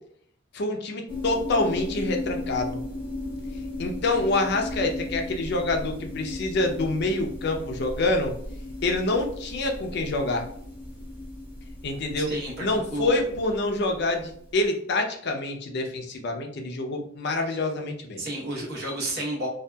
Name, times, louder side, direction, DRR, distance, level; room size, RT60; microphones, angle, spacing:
voice 1, 0.5-2.8 3.8-8.3 8.8-10.5 11.8-12.3 12.6-18.2, left 2 dB, 55° left, 3 dB, 0.5 m, -26 dB
sound 1, 1.1-14.5, left 2 dB, 10° right, 0.7 m, -36 dB
voice 2, 12.2-13.2 17.5-17.6 18.2-19.5, right 1 dB, 50° right, -3 dB, 0.9 m, -31 dB
2.7 x 2.3 x 2.2 m, 0.64 s
head